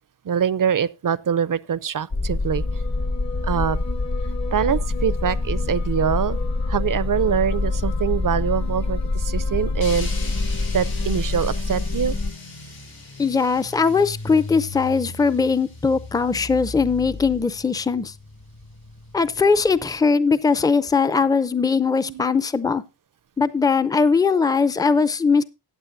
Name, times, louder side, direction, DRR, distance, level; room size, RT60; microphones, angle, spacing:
voice 1, 0.2-2.6 3.4-3.8 4.5-6.4 6.7-10.1 10.7-12.1 22.0-22.4, right 8 dB, 45° right, 0.5 m, -24 dB
sound 1, 2.1-12.3, left 3 dB, 40° left, 1.0 m, -25 dB
sound 2, 9.8-20.0, left 2 dB, 90° left, 4.7 m, -38 dB
voice 2, 13.2-18.1 19.1-22.8 23.4-25.4, left 5 dB, 10° left, 0.5 m, -20 dB
14.5 x 8.9 x 2.6 m
wide cardioid pair, 65°, 45 cm